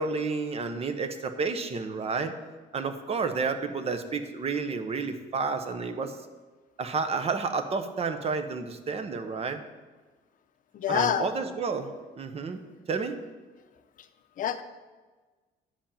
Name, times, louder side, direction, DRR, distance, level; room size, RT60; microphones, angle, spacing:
voice 1, 0.0-2.3 2.7-6.2 6.8-9.6 10.9-11.9 12.2-12.6 12.9-13.2, right 4 dB, 35° right, 8 dB, 1.0 m, -30 dB
voice 2, 10.7-11.3 14.4-14.6, left 10 dB, 50° left, 10 dB, 0.7 m, -26 dB
10.0 x 5.3 x 7.1 m, 1.3 s
cardioid pair, 110°, 17 cm